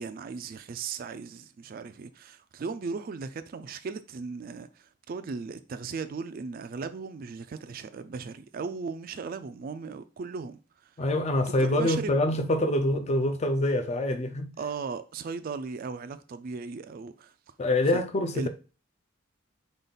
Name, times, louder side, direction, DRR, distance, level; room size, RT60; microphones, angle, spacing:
voice 1, 0.0-10.9 11.4-12.2 14.6-17.3 17.9-18.0 18.3-18.5, right 5 dB, 45° right, 0.3 m, -37 dB
voice 2, 11.0-14.5 17.6-18.5, left 1 dB, 35° left, 0.5 m, -25 dB
5.1 x 2.4 x 3.9 m
head